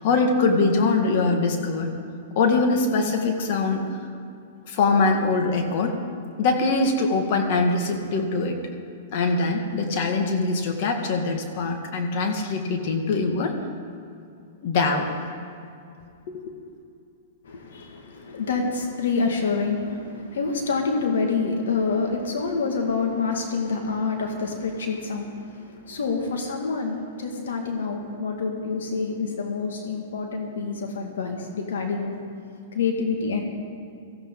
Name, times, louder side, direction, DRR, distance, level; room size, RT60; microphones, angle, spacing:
voice 1, 0.0-1.9 2.4-3.8 4.7-5.9 6.4-8.6 9.1-13.6 14.6-15.1 16.3-16.4, left 3 dB, 55° left, 4 dB, 1.8 m, -23 dB
voice 2, 17.5-32.2 32.7-33.4, left 4 dB, 80° left, 2 dB, 1.9 m, -27 dB
17.5 x 14.5 x 3.9 m, 2.5 s
hypercardioid pair, 130°, 0 cm